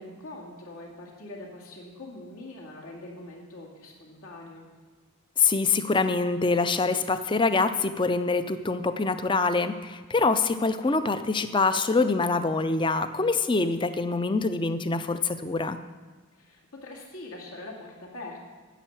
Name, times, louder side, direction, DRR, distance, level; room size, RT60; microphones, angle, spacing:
voice 1, 0.0-4.7 16.4-18.4, left 2 dB, 80° left, -2 dB, 2.3 m, -43 dB
voice 2, 5.4-15.8, left 3 dB, 20° left, 11 dB, 0.4 m, -25 dB
10.0 x 7.1 x 8.6 m, 1.5 s
head